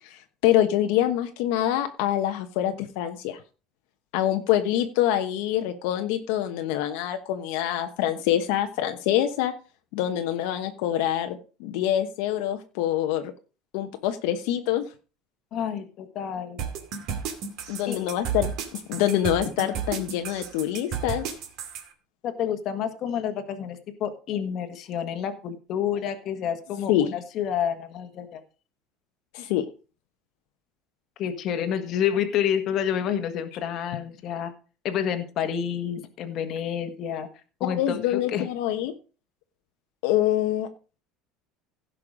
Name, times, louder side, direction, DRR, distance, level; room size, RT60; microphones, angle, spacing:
voice 1, 0.0-3.4 4.1-9.5 9.9-13.3 13.7-14.9 17.7-21.2 26.9-27.1 29.3-29.6 37.6-38.9 40.0-40.7, left 12 dB, 70° left, 6 dB, 1.1 m, -25 dB
voice 2, 15.5-16.6 17.9-18.1 22.2-28.4 31.2-34.5 34.8-37.3 37.6-38.5, left 9 dB, 40° left, 7 dB, 1.5 m, -29 dB
sound 1, 16.6-21.8, right 7 dB, 50° right, 2.4 m, -32 dB
16.0 x 5.8 x 5.0 m, 0.35 s
cardioid pair, 165°, 0 cm